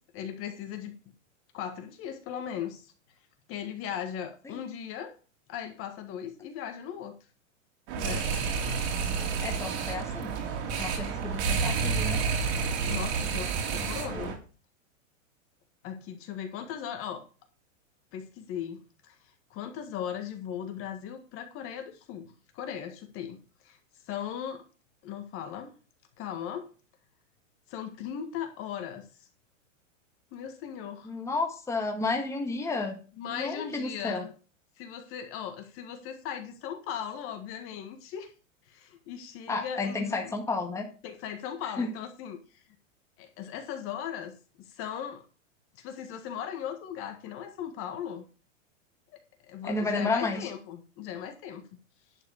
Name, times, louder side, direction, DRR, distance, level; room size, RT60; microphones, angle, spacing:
voice 1, 0.1-0.9 1.5-2.9 3.5-5.1 5.5-7.2 8.0-8.3 12.8-14.4 15.8-17.2 18.1-23.8 24.0-24.6 25.0-25.7 26.2-26.7 27.7-29.3 30.3-31.1 33.2-34.3 34.8-38.3 38.6-40.3 41.0-42.6 43.2-45.2 45.7-48.3 49.1-49.2 49.5-51.6, left 9 dB, 35° left, 6 dB, 1.7 m, -38 dB
sound 1, 7.9-14.4, right 5 dB, 55° right, 3.0 m, -30 dB
voice 2, 9.4-10.3 10.8-12.2 13.7-13.9 14.1-14.2 31.0-33.0 33.3-34.2 39.5-40.9 41.8-41.9 49.6-50.5, left 3 dB, 5° left, 2 dB, 1.7 m, -31 dB
11.0 x 4.9 x 6.4 m, 0.36 s
supercardioid pair, 140°, 38 cm